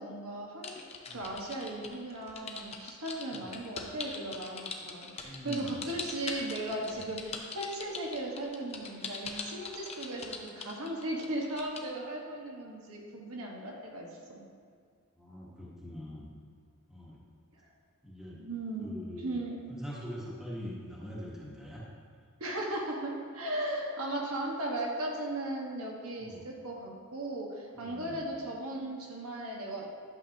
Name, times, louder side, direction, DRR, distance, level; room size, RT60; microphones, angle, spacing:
voice 1, 0.0-14.4 17.6-17.7 18.3-18.9 19.2-19.6 22.4-29.9, right 1 dB, 85° right, -1 dB, 1.4 m, -37 dB
sound 1, 0.6-11.8, left 5 dB, 30° left, 0.6 m, -41 dB
voice 2, 5.2-5.9 7.0-7.1 15.2-16.3 16.9-17.2 18.0-18.5 18.8-19.3 19.7-21.8 26.2-26.4 27.7-28.3, equal, ahead, -6 dB, 1.2 m, -43 dB
11.5 x 7.0 x 2.9 m, 2.1 s
head